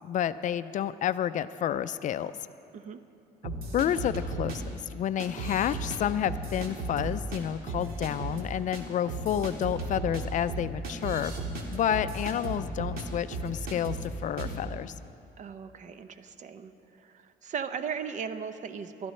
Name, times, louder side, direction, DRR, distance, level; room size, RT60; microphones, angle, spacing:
voice 1, 0.0-2.3 3.4-4.6 4.9-11.3 11.7-14.9, left 10 dB, 50° left, 14 dB, 0.4 m, -30 dB
sound 1, 3.4-4.6 5.2-6.0 6.3-7.4 7.7-8.4 8.7-8.8 9.1-13.0 13.3-14.1 14.4-14.6, right 2 dB, 60° right, 2.0 m, -35 dB
voice 2, 15.4-16.7 17.0-19.1, right 6 dB, 45° right, 10 dB, 0.7 m, -37 dB
20.5 x 12.5 x 3.2 m, 2.7 s
cardioid pair, 110°, 17 cm